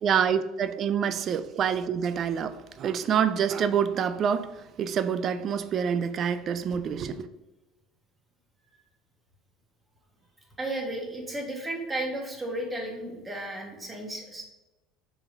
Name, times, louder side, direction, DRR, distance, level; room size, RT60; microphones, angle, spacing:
voice 1, 0.0-7.3, right 7 dB, 50° right, 0.4 m, -27 dB
voice 2, 10.6-14.4, right 1 dB, 20° right, 1.7 m, -34 dB
5.1 x 3.6 x 5.2 m
supercardioid pair, 80°, 0 cm